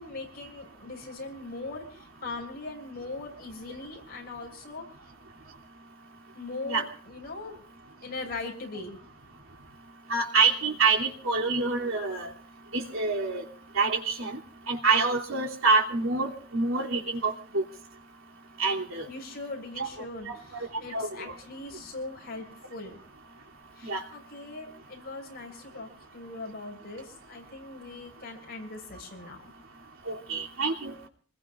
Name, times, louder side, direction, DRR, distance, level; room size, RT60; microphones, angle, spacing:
voice 1, 0.0-4.9 6.3-7.7 8.0-9.0 19.1-23.0 23.8-29.5, left 3 dB, 50° left, 1 dB, 6.9 m, -40 dB
voice 2, 10.1-12.3 12.7-13.4 13.7-14.4 14.7-17.6 18.6-19.1 19.8-19.9 20.9-21.3 23.8-24.0 30.1-31.0, right 4 dB, 80° right, 0 dB, 3.0 m, -26 dB
27.5 x 20.5 x 2.5 m, 0.43 s
head